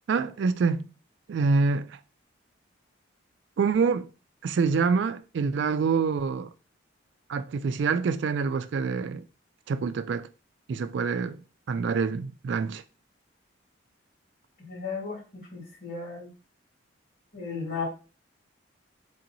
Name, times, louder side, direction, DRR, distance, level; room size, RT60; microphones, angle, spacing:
voice 1, 0.1-0.9 1.3-2.0 3.6-4.1 4.4-6.5 7.3-9.3 9.7-10.3 10.7-11.4 11.7-12.8, right 5 dB, 65° right, 0.3 m, -26 dB
voice 2, 14.6-15.2 15.5-16.3 17.3-17.8, left 5 dB, 60° left, 2.2 m, -34 dB
3.5 x 2.9 x 4.0 m
head